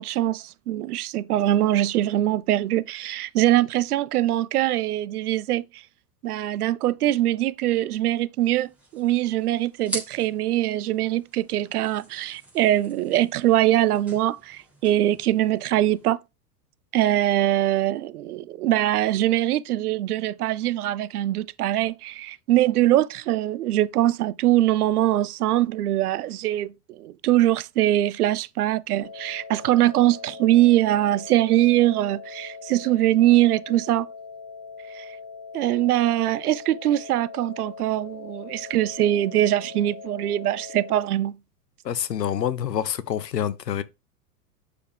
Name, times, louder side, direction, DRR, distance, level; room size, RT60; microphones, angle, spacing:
voice 1, 0.0-5.8 6.2-16.2 16.9-34.1 34.9-35.1 35.5-41.3, right 14 dB, 70° right, 0.6 m, -22 dB
sound 1, 8.4-16.1, right 2 dB, 5° right, 3.9 m, -42 dB
sound 2, 29.0-41.0, left 5 dB, 45° left, 1.6 m, -41 dB
voice 2, 41.8-43.8, left 9 dB, 85° left, 0.8 m, -27 dB
6.9 x 4.9 x 3.4 m
figure-of-eight pair, 95°, 48 cm